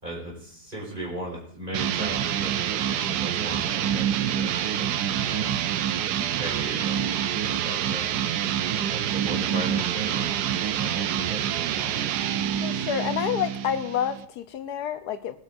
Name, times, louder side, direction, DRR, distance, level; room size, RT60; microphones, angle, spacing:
voice 1, 0.0-5.6 6.2-8.1 8.6-12.0, right 1 dB, 30° right, -5 dB, 4.7 m, -38 dB
sound 1, 1.7-14.3, right 10 dB, 85° right, 1.2 m, -27 dB
voice 2, 12.6-15.4, left 9 dB, 80° left, 11 dB, 1.3 m, -28 dB
21.0 x 9.2 x 2.6 m, 0.63 s
omnidirectional pair, 1.7 m